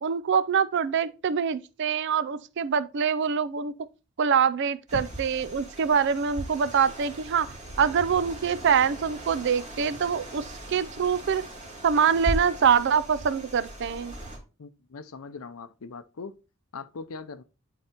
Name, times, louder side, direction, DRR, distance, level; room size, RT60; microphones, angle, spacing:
voice 1, 0.0-3.7 4.2-7.5 7.8-11.4 11.8-14.1, right 7 dB, 55° right, 0.4 m, -24 dB
sound 1, 4.9-14.4, right 1 dB, 35° right, 2.8 m, -38 dB
voice 2, 14.6-16.3 16.7-17.4, left 4 dB, 75° left, 0.6 m, -41 dB
11.5 x 4.0 x 2.9 m
head